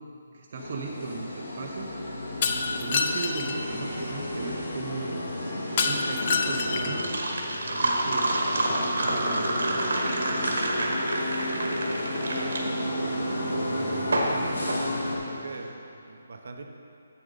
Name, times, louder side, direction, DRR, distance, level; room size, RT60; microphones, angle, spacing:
voice 1, 0.3-1.9 2.8-5.2 5.8-7.2 7.6-9.8 10.2-11.0, right 4 dB, 45° right, 0 dB, 0.8 m, -37 dB
sound 1, 0.5-15.2, left 1 dB, 90° left, 2.2 m, -32 dB
Shatter, 2.4-3.6 5.8-7.1, left 5 dB, 35° left, 0.5 m, -27 dB
sound 2, 5.7-15.6, right 1 dB, 80° right, 1.6 m, -29 dB
voice 2, 12.3-12.6 13.8-16.6, right 3 dB, 65° right, 3 dB, 0.9 m, -41 dB
7.9 x 7.3 x 5.2 m, 2.6 s
hypercardioid pair, 165°, 0 cm